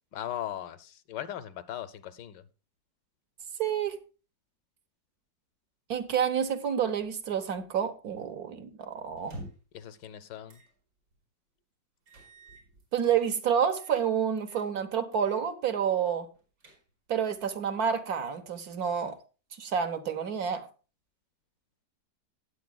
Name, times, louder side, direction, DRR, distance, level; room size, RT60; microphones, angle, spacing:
voice 1, 0.1-2.4 9.7-10.6, left 11 dB, 75° left, 14 dB, 1.4 m, -38 dB
voice 2, 3.6-4.0 5.9-9.4 12.9-16.3 17.1-19.2 19.6-20.6, right 8 dB, 60° right, 9 dB, 1.4 m, -29 dB
sound 1, 9.2-9.8 10.5-10.7 11.1-11.2 12.1-13.2 13.7-14.1 14.4-14.7 15.1-15.4 15.8-15.9 16.3-17.1, right 1 dB, 75° right, 5.4 m, -48 dB
18.0 x 8.3 x 2.2 m, 0.34 s
omnidirectional pair, 1.9 m